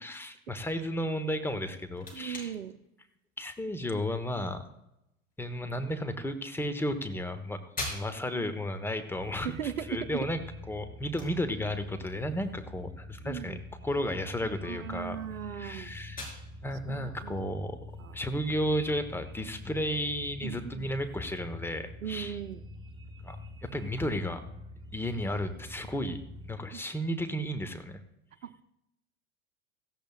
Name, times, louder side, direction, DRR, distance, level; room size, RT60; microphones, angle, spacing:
voice 1, 0.0-2.5 3.4-4.6 5.4-7.6 7.9-9.6 9.9-10.4 10.7-13.6 13.8-15.2 15.5-16.2 16.6-17.8 18.1-22.4 23.2-23.4 23.6-24.4 24.9-26.2 26.5-28.0, equal, 5° left, 9 dB, 1.2 m, -33 dB
sound 1, 1.4-19.1, left 2 dB, 20° left, 4.8 m, -48 dB
voice 2, 2.1-2.8 9.4-10.3 13.2-13.6 14.6-16.0 16.9-17.5 18.0-18.2 20.4-20.9 22.0-22.6 26.7-26.8 28.4-28.6, right 9 dB, 70° right, 11 dB, 0.8 m, -38 dB
sound 2, 9.1-26.5, left 1 dB, 10° right, 1.8 m, -46 dB
17.0 x 15.5 x 2.5 m, 0.84 s
figure-of-eight pair, 85°, 41 cm